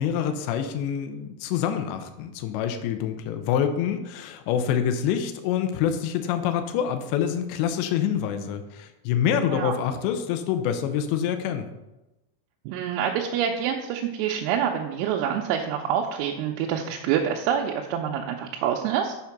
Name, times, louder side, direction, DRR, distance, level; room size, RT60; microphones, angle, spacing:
voice 1, 0.0-11.7, left 9 dB, 85° left, 7 dB, 2.5 m, -26 dB
voice 2, 12.7-19.1, right 8 dB, 85° right, 1 dB, 3.4 m, -26 dB
7.2 x 6.6 x 5.8 m, 0.99 s
omnidirectional pair, 5.9 m